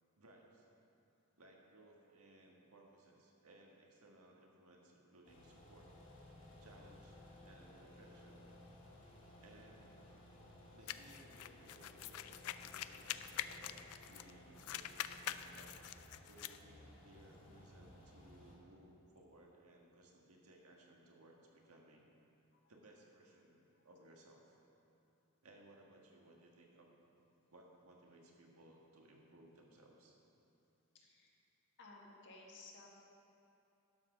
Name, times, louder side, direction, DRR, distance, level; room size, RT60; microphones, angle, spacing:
voice 1, 0.2-0.7 1.4-5.9 6.6-8.5 9.4-10.1 10.7-15.7 16.3-22.1 22.7-24.5 25.4-26.9 27.5-30.1, right 1 dB, 75° right, -1 dB, 1.5 m, -62 dB
sound 1, 5.2-18.5, left 1 dB, 40° left, 2.1 m, -59 dB
sound 2, 10.9-14.3 14.6-16.6, left 11 dB, 70° left, 0.4 m, -45 dB
voice 2, 30.9-31.4 31.8-32.9, left 3 dB, 55° left, -2 dB, 1.6 m, -58 dB
11.5 x 6.0 x 6.1 m, 2.8 s
head